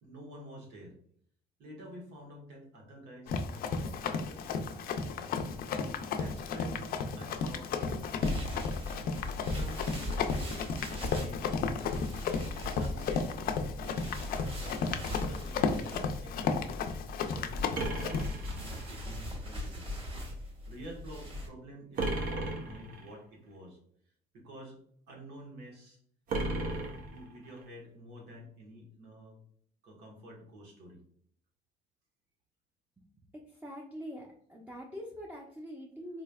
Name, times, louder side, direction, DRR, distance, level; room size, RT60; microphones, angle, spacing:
voice 1, 0.0-0.9 1.6-5.3 6.2-6.9 7.1-8.3 9.4-12.0 12.7-16.7 17.3-19.9 20.7-23.8 24.3-24.8 25.1-26.0 27.1-29.4 29.8-31.0, right 1 dB, 80° right, -1 dB, 1.4 m, -49 dB
Run, 3.3-18.3, left 5 dB, 60° left, 0.5 m, -34 dB
sound 1, 8.2-21.5, left 1 dB, 30° right, 1.5 m, -40 dB
sound 2, 17.7-19.1 22.0-23.1 26.3-27.6, right 2 dB, 55° right, 0.7 m, -35 dB
voice 2, 33.3-36.2, equal, 10° right, -1 dB, 0.6 m, -44 dB
4.0 x 3.2 x 2.3 m, 0.63 s
cardioid pair, 110°, 17 cm